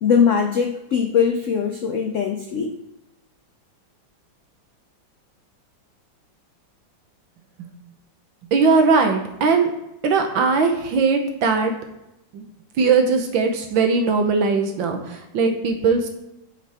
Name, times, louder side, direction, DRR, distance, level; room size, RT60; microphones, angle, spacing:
voice 1, 0.0-2.7, left 6 dB, 85° left, 3 dB, 0.6 m, -21 dB
voice 2, 8.5-9.7 10.0-11.7 12.3-12.4 12.8-16.1, right 4 dB, 75° right, 5 dB, 1.7 m, -19 dB
9.6 x 5.7 x 3.5 m, 0.89 s
omnidirectional pair, 2.1 m